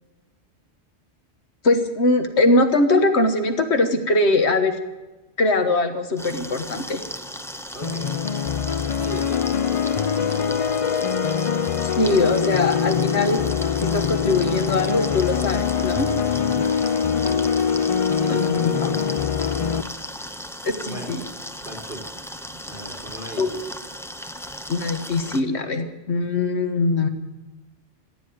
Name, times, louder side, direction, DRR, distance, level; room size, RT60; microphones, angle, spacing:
voice 1, 1.6-4.8 5.4-7.0 11.8-13.4 13.8-16.1 18.3-18.9 20.6-21.2 23.4-23.5 24.7-27.1, left 2 dB, 80° left, 7 dB, 1.7 m, -21 dB
sound 1, 6.2-25.4, equal, 5° left, 0.6 m, -36 dB
voice 2, 7.7-8.2 8.6-10.7 16.3-16.7 18.2-19.2 19.4-19.6 20.8-21.2 21.6-22.1 22.5-23.8, right 1 dB, 50° right, 0 dB, 4.3 m, -38 dB
sound 2, 7.8-19.8, left 7 dB, 45° left, 0.5 m, -23 dB
15.0 x 9.4 x 9.4 m, 1.1 s
omnidirectional pair, 1.1 m